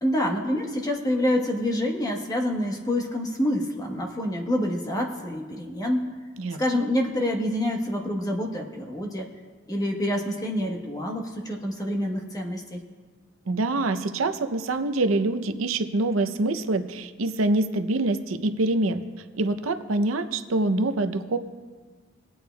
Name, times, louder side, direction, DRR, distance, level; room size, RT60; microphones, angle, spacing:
voice 1, 0.0-6.1 6.6-9.3 9.7-12.8, left 1 dB, 20° left, 1 dB, 1.1 m, -27 dB
voice 2, 6.4-6.9 13.5-19.0 19.4-21.4, right 2 dB, 90° right, 9 dB, 0.6 m, -25 dB
19.5 x 8.7 x 2.2 m, 1.4 s
head